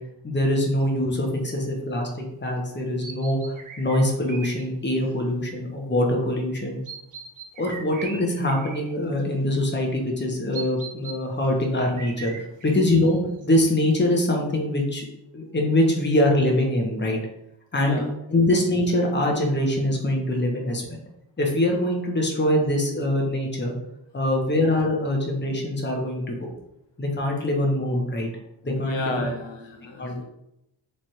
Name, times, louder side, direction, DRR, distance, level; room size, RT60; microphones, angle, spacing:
voice 1, 0.2-6.8 7.6-15.0 15.3-17.2 17.7-18.0 18.3-21.0 21.4-23.7 24.1-26.5 27.0-28.3 28.6-29.3 30.0-30.2, left 1 dB, 25° left, 0 dB, 0.9 m, -23 dB
sound 1, 0.7-0.8 3.0-4.7 5.0-5.1 6.9-9.4 10.5-11.2 12.0-13.8, right 5 dB, 45° right, 0.6 m, -40 dB
voice 2, 17.8-18.1 28.6-30.2, left 2 dB, 65° left, 2 dB, 0.6 m, -32 dB
3.2 x 2.5 x 4.2 m, 0.82 s
wide cardioid pair, 90°, 46 cm